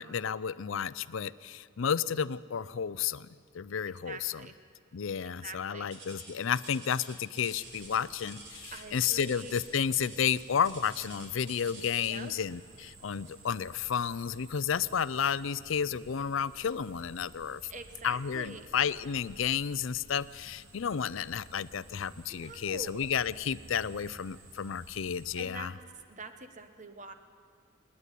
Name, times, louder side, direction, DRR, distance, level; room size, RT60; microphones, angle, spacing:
voice 1, 0.0-3.3 3.5-4.4 4.9-17.6 18.0-25.7, left 7 dB, 65° left, 18 dB, 0.5 m, -32 dB
voice 2, 4.0-4.5 5.4-5.9 8.7-9.6 12.0-12.3 17.7-18.7 22.3-23.1 25.4-25.7 26.1-27.1, right 3 dB, 35° right, 8 dB, 1.2 m, -45 dB
sound 1, 5.9-12.3 13.2-13.5 14.0-14.2 14.8-14.9, right 2 dB, 55° right, 4.1 m, -49 dB
sound 2, 7.5-25.4, right 2 dB, 80° right, 2.7 m, -54 dB
28.5 x 9.7 x 10.0 m, 2.1 s
head